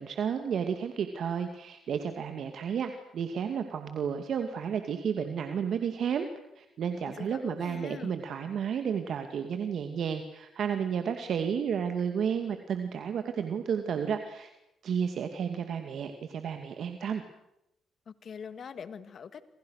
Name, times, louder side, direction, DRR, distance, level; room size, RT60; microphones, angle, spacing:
voice 1, 0.0-6.3 6.6-14.5 14.8-17.2, right 7 dB, 65° right, 7 dB, 2.2 m, -32 dB
voice 2, 7.1-8.1 18.1-19.5, left 6 dB, 50° left, 13 dB, 1.8 m, -43 dB
28.0 x 26.0 x 6.5 m, 0.83 s
cardioid pair, 90°, 0 cm